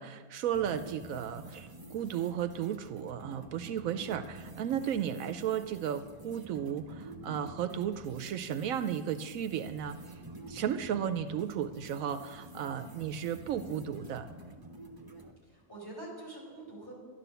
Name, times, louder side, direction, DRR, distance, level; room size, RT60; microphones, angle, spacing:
voice 1, 0.0-10.2 10.5-14.3, right 9 dB, 80° right, 10 dB, 1.0 m, -34 dB
sound 1, 0.5-15.3, right 1 dB, 20° right, 1.0 m, -48 dB
voice 2, 15.4-16.9, right 2 dB, 15° left, -3 dB, 4.9 m, -46 dB
11.5 x 11.5 x 6.9 m, 1.5 s
omnidirectional pair, 1.4 m